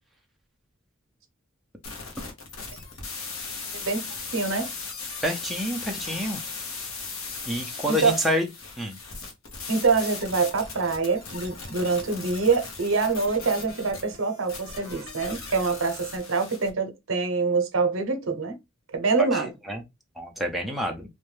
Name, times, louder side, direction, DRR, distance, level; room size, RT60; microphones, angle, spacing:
sound 1, 1.8-16.7, left 4 dB, 80° left, 0.8 m, -38 dB
voice 1, 3.7-4.0 4.3-4.7 7.9-8.2 9.7-18.6 18.9-19.5, right 4 dB, 75° right, 0.7 m, -25 dB
voice 2, 5.2-6.4 6.8-6.9 7.5-8.5 8.8-9.0 19.2-19.8 20.2-21.0, equal, ahead, 0.4 m, -28 dB
2.5 x 2.2 x 3.1 m
head